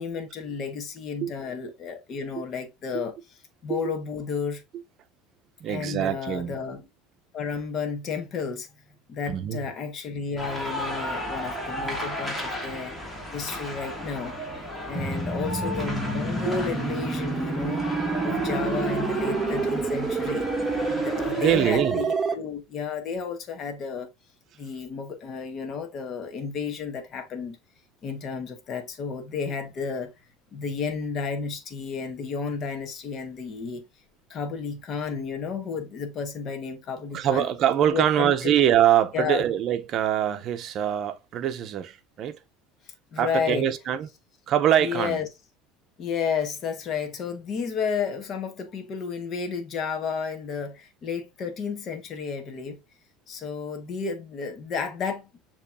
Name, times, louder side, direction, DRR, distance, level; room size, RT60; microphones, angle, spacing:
voice 1, 0.0-3.1 3.6-4.6 5.6-6.8 7.3-8.7 9.1-13.0 13.3-14.4 14.9-17.9 18.2-20.5 20.9-24.1 24.6-27.6 28.0-30.1 30.5-33.8 34.3-37.5 37.9-38.5 39.1-39.4 43.1-43.7 44.8-45.3 46.0-52.8 53.3-55.4, left 5 dB, 40° left, 1.2 m, -32 dB
voice 2, 5.6-6.6 9.3-9.6 21.4-22.0 37.1-42.4 43.2-44.1 44.5-45.2, right 10 dB, 45° right, 0.7 m, -24 dB
sound 1, 10.4-21.8, left 1 dB, 10° left, 1.9 m, -34 dB
sound 2, 14.9-22.3, right 4 dB, 15° right, 1.0 m, -28 dB
6.6 x 3.0 x 2.6 m
supercardioid pair, 130°, 0 cm